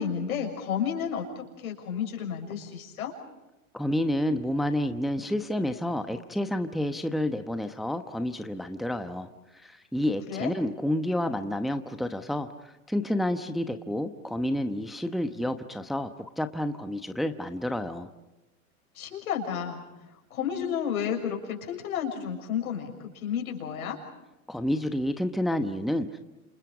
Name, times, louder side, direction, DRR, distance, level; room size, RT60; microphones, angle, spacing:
voice 1, 0.0-3.1 10.3-10.5 18.9-19.8 20.3-24.0, left 8 dB, 75° left, 3 dB, 6.8 m, -31 dB
voice 2, 3.7-18.1 24.5-26.2, left 1 dB, ahead, 8 dB, 1.0 m, -29 dB
29.0 x 28.0 x 5.0 m, 1.0 s
hypercardioid pair, 115°, 43 cm